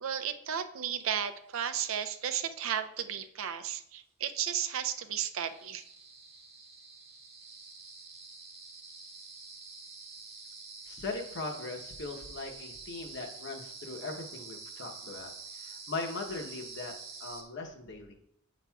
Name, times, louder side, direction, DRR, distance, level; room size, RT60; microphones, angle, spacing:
voice 1, 0.0-5.8, right 9 dB, 75° right, 9 dB, 0.5 m, -34 dB
sound 1, 1.5-2.5 4.7-4.8 5.1-17.4, right 4 dB, 30° right, 1.1 m, -47 dB
voice 2, 10.9-15.3 15.6-16.9 17.2-18.1, left 3 dB, 60° left, 2 dB, 0.9 m, -39 dB
8.0 x 6.0 x 2.3 m, 0.71 s
head